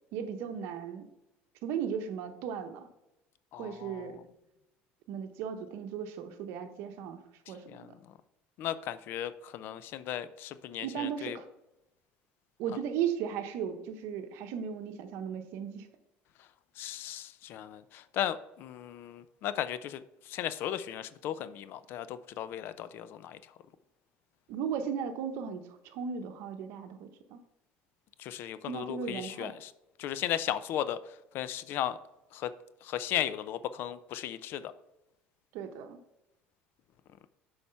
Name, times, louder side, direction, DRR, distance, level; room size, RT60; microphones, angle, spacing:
voice 1, 0.1-1.0 1.6-2.9 3.6-4.2 5.1-7.2 7.5-7.8 10.8-11.5 12.6-15.9 24.5-27.4 28.7-29.5 35.5-36.0, right 7 dB, 70° right, 8 dB, 1.0 m, -36 dB
voice 2, 3.5-4.2 7.5-8.0 8.6-11.4 16.4-16.5 16.8-23.5 28.2-29.7 30.0-32.0 32.3-32.5 32.8-34.7, left 11 dB, 55° left, 14 dB, 0.5 m, -36 dB
7.1 x 4.8 x 5.6 m, 0.91 s
cardioid pair, 145°, 4 cm